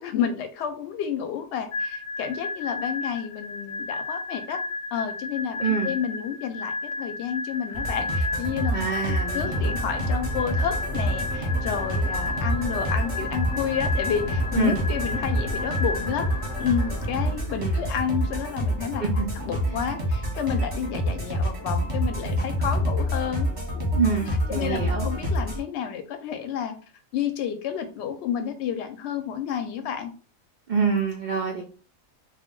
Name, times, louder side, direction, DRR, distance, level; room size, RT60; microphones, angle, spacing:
voice 1, 0.0-4.6 4.9-16.3 16.6-19.0 19.4-23.5 24.5-26.7 27.1-30.1, left 8 dB, 65° left, 7 dB, 0.8 m, -30 dB
sound 1, 1.7-17.3, left 3 dB, 85° left, 0.3 m, -33 dB
voice 2, 5.6-5.9 8.7-9.7 14.6-14.8 17.6-17.9 19.0-19.2 19.7-19.8 23.9-25.1 30.7-31.6, right 5 dB, 75° right, 1 dB, 0.4 m, -26 dB
sound 2, 7.7-25.6, equal, 30° right, 0.8 m, -28 dB
sound 3, 9.4-17.4, left 1 dB, 30° left, 0.7 m, -36 dB
2.2 x 2.1 x 3.6 m, 0.37 s
omnidirectional pair, 1.4 m